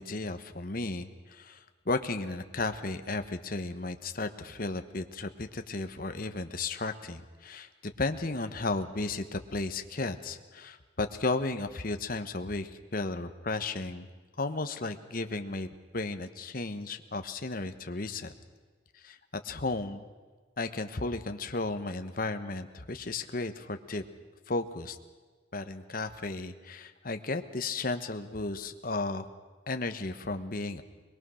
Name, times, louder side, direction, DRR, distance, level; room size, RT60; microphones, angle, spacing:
voice 1, 0.0-14.1 14.4-15.7 15.9-18.3 18.9-19.2 19.4-20.0 20.6-24.0 24.5-25.0 25.5-29.3 29.7-30.8, left 3 dB, 45° left, 8 dB, 1.1 m, -34 dB
23.0 x 22.0 x 6.3 m, 1.4 s
head